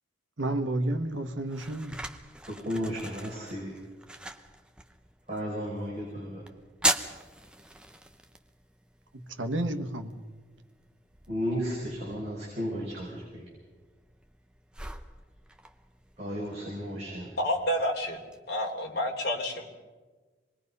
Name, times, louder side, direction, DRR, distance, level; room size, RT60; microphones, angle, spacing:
voice 1, 0.4-1.9 9.4-10.1, right 1 dB, 85° right, 1.5 m, -30 dB
sound 1, 0.8-18.4, right 1 dB, 5° right, 0.8 m, -40 dB
voice 2, 2.5-3.7 5.3-6.4 11.3-13.5 16.2-17.3, equal, 35° right, 5.1 m, -34 dB
voice 3, 17.4-18.2 18.5-19.7, left 1 dB, 55° left, 3.4 m, -29 dB
26.0 x 20.5 x 5.5 m
head